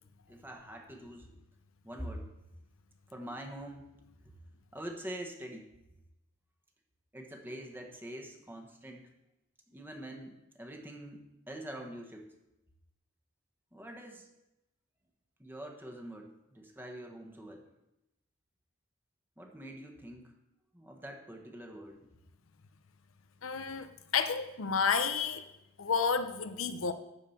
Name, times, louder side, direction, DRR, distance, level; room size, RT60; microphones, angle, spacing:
voice 1, 0.3-1.3 1.8-2.3 3.1-3.9 4.2-4.3 4.7-5.7 7.1-9.1 9.7-12.3 13.7-14.3 15.4-17.7 19.4-20.3 20.7-22.1, right 1 dB, 10° right, 1.3 m, -45 dB
voice 2, 23.4-25.4 25.8-26.9, left 6 dB, 80° left, 0.7 m, -31 dB
12.5 x 4.9 x 7.2 m
head